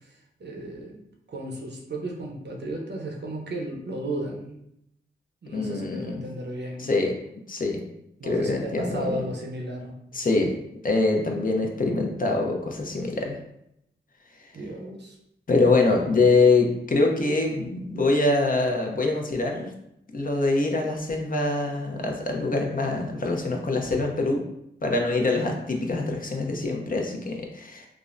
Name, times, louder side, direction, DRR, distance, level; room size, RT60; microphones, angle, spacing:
voice 1, 0.4-1.0 1.3-4.5 5.4-6.9 8.2-9.9 14.5-15.1, right 1 dB, 55° right, 0 dB, 0.7 m, -34 dB
voice 2, 5.5-6.2 6.8-7.2 7.5-7.8 8.2-9.2 10.1-10.5 10.8-13.4 15.5-19.7 20.1-24.4 24.8-27.9, left 3 dB, 45° left, 1 dB, 0.6 m, -24 dB
3.5 x 2.1 x 2.4 m, 0.78 s
cardioid pair, 40°, 21 cm